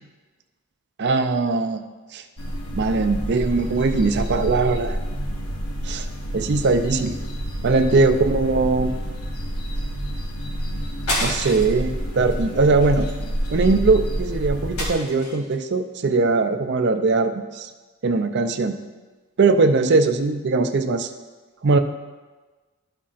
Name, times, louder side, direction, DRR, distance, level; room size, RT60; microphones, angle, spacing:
voice 1, 1.0-1.8 2.1-2.2 2.7-5.0 5.8-6.1 6.3-7.1 7.6-8.9 11.2-13.1 13.5-17.7 18.0-18.8 19.4-21.1 21.6-21.8, right 3 dB, 50° right, 7 dB, 0.5 m, -20 dB
sound 1, 2.4-14.9, right 1 dB, 85° left, 0.9 m, -28 dB
sound 2, 11.1-11.8 12.3-12.5 12.8-13.8 14.8-15.5, left 1 dB, 70° left, 1.7 m, -29 dB
12.5 x 5.6 x 2.5 m, 1.3 s
head